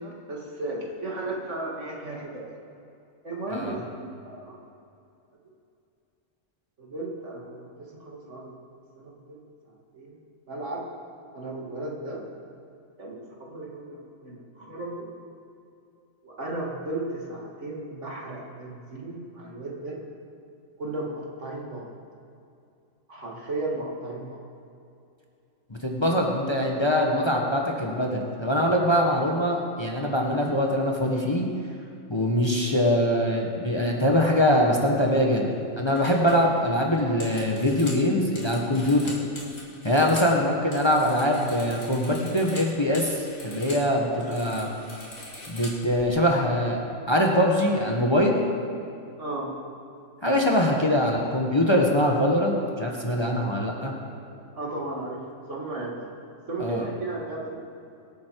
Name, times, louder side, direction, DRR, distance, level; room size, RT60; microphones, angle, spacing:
voice 1, 0.0-2.5 3.2-4.6 6.8-8.5 9.0-9.4 9.9-10.2 10.5-10.8 11.3-12.2 13.0-15.1 16.2-20.0 20.8-21.9 23.1-24.4 49.2-49.5 54.5-55.2 55.5-56.1 56.5-57.6, right 2 dB, 60° right, -2 dB, 2.5 m, -35 dB
voice 2, 25.8-31.5 32.1-35.5 35.8-39.1 39.8-44.7 45.5-48.4 50.2-53.9 56.6-56.9, equal, 20° left, 0 dB, 1.4 m, -23 dB
sound 1, 35.3-35.5 35.9-40.3 40.6-43.9 44.1-46.0, left 1 dB, 65° left, 3.0 m, -42 dB
24.0 x 8.6 x 4.7 m, 2.6 s
omnidirectional pair, 1.4 m